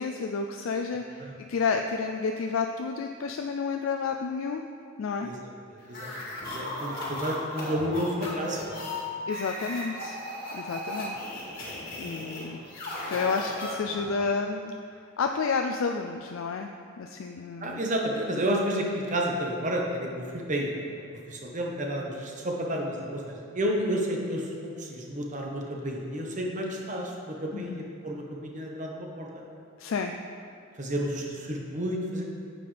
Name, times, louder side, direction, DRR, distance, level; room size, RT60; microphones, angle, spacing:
voice 1, 0.0-4.6 5.0-5.3 9.3-10.2 10.5-11.2 12.0-12.6 13.1-14.7 15.2-16.7 17.0-17.8 27.5-27.8 29.8-30.1, left 5 dB, 70° left, 4 dB, 0.4 m, -30 dB
voice 2, 5.7-8.8 12.6-12.7 17.6-29.4 30.8-32.2, equal, 40° right, 0 dB, 1.1 m, -31 dB
sound 1, 5.9-14.2, left 1 dB, 45° left, 1.9 m, -36 dB
9.3 x 7.7 x 3.4 m, 2.3 s
head